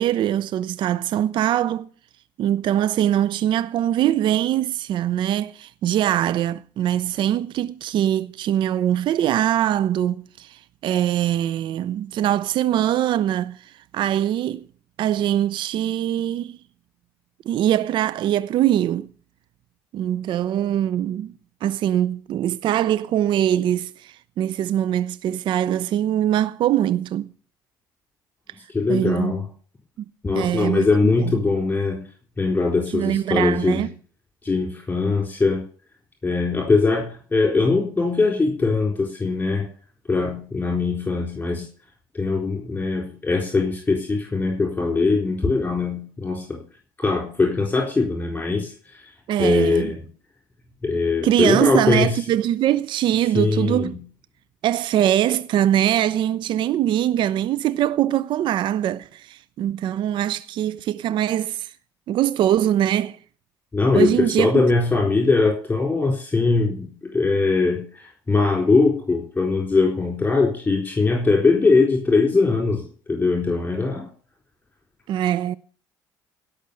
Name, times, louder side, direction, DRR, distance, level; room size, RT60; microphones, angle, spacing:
voice 1, 0.0-1.9 2.4-14.7 15.0-16.6 17.5-19.1 19.9-21.3 21.6-27.3 28.9-29.3 30.0-30.1 30.3-31.4 32.9-33.9 49.3-50.0 51.2-54.0 54.6-61.7 62.1-63.2 63.9-64.7 75.1-75.6, right 11 dB, 50° right, 0.5 m, -22 dB
voice 2, 28.7-29.5 30.2-32.0 32.4-33.8 34.4-35.6 36.2-39.6 40.1-41.7 42.1-46.6 47.0-49.0 49.4-50.0 50.8-52.2 53.3-54.0 63.7-74.1, left 3 dB, 15° left, 4.0 m, -21 dB
16.5 x 6.3 x 6.8 m
hypercardioid pair, 60°, 10 cm